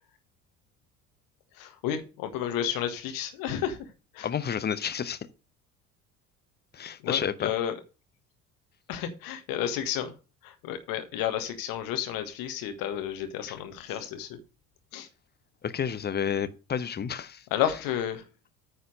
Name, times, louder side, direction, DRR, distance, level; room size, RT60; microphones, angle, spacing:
voice 1, 1.5-4.3 7.0-7.7 8.9-10.1 10.4-14.4 14.9-15.1 17.5-18.2, left 10 dB, 50° left, 1.6 m, -31 dB
voice 2, 4.2-5.2 6.7-7.5 15.6-17.4, left 8 dB, 25° left, 0.8 m, -30 dB
9.4 x 4.4 x 6.4 m
figure-of-eight pair, 60°, 43 cm